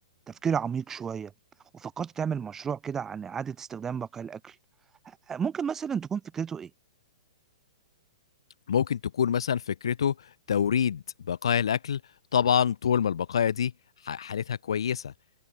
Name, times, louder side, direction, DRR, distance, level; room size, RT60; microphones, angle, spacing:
voice 1, 0.3-1.3 1.7-4.5 5.1-6.7, right 7 dB, 15° right, 2.1 m, -32 dB
voice 2, 8.7-12.0 12.3-13.7 14.0-15.1, left 8 dB, 60° left, 1.5 m, -26 dB
figure-of-eight pair, 115°, 3 cm